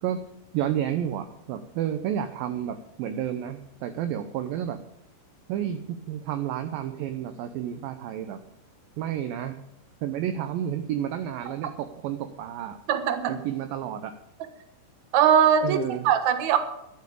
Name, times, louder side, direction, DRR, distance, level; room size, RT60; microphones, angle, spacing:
voice 1, 0.5-4.8 5.5-8.4 9.0-9.6 10.0-12.8 13.3-14.2 15.6-16.1, right 10 dB, 75° right, 8 dB, 2.2 m, -31 dB
voice 2, 12.9-13.4 15.1-15.8 16.0-16.6, right 8 dB, 60° right, 7 dB, 2.2 m, -20 dB
12.0 x 8.6 x 8.5 m, 0.81 s
omnidirectional pair, 4.8 m